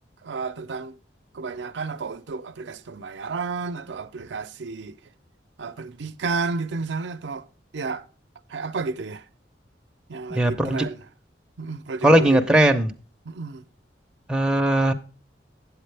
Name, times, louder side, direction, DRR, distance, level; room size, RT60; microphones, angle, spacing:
voice 1, 0.2-0.9 1.3-5.0 5.6-7.5 7.7-8.0 8.5-9.3 10.1-11.0 11.6-12.4 13.3-13.6, right 4 dB, 75° right, 0.5 m, -31 dB
voice 2, 10.3-10.9 12.0-12.9 14.3-14.9, right 1 dB, 5° right, 0.6 m, -19 dB
8.5 x 8.1 x 3.3 m
head